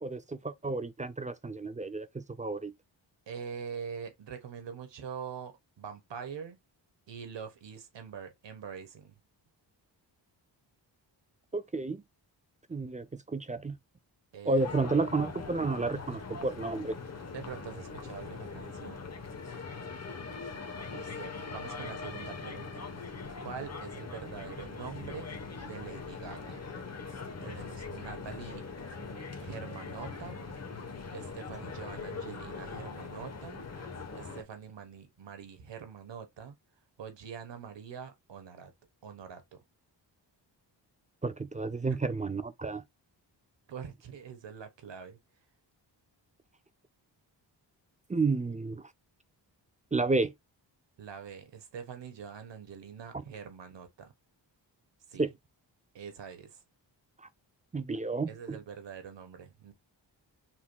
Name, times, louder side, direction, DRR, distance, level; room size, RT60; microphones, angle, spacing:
voice 1, 0.0-2.7 11.5-12.0 12.7-13.8 14.5-17.0 41.2-42.8 48.1-48.8 49.9-50.3 55.2-55.3 57.2-57.3 57.7-58.6, right 3 dB, 20° right, 0.4 m, -31 dB
voice 2, 3.3-6.6 7.1-9.2 14.3-14.6 17.3-19.0 20.9-22.9 23.4-26.6 27.4-28.7 29.4-30.4 31.1-33.6 34.2-36.6 37.0-38.7 39.0-39.6 41.9-42.0 43.7-45.2 51.0-54.1 55.1-55.3 55.9-56.6 58.3-59.7, right 7 dB, 70° right, 1.3 m, -44 dB
sound 1, 14.6-34.4, left 4 dB, 35° left, 1.0 m, -41 dB
5.9 x 2.9 x 2.2 m
cardioid pair, 80°, 45 cm